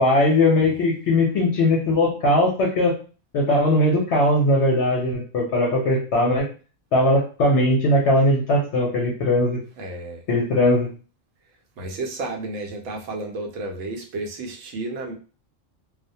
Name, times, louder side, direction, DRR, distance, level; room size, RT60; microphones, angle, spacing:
voice 1, 0.0-3.0 3.3-6.4 6.9-9.6 10.3-10.9, left 1 dB, 65° left, -3 dB, 0.8 m, -19 dB
voice 2, 9.8-10.2 11.8-15.1, right 2 dB, 80° right, 3 dB, 1.0 m, -32 dB
2.3 x 2.1 x 2.6 m, 0.37 s
omnidirectional pair, 1.3 m